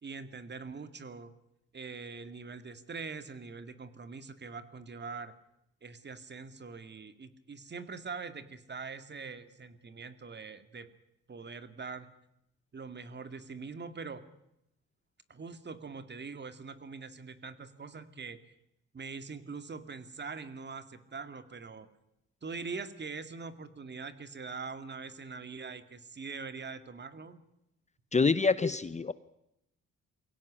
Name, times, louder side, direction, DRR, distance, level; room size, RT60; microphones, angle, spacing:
voice 1, 0.0-1.3 1.7-5.3 5.8-10.9 11.3-12.1 12.7-14.2 15.3-18.5 18.9-21.9 22.4-27.4, right 4 dB, 35° right, 11 dB, 2.2 m, -43 dB
voice 2, 28.1-29.1, left 4 dB, 25° left, 15 dB, 0.8 m, -26 dB
23.0 x 17.0 x 9.9 m, 0.83 s
cardioid pair, 90°, 30 cm